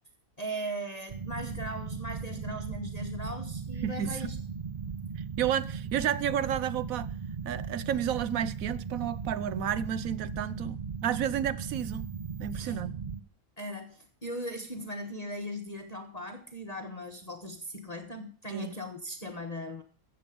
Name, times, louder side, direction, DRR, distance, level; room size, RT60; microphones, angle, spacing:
voice 1, 0.4-4.4 12.5-12.8 13.6-19.8, equal, 30° left, 1.2 m, -38 dB
sound 1, 1.1-13.2, right 6 dB, 45° right, 0.5 m, -37 dB
voice 2, 3.8-4.3 5.2-7.1 7.4-12.1 12.4-12.9 18.5-18.7, right 9 dB, 75° right, 1.1 m, -31 dB
14.0 x 7.8 x 5.2 m
omnidirectional pair, 1.5 m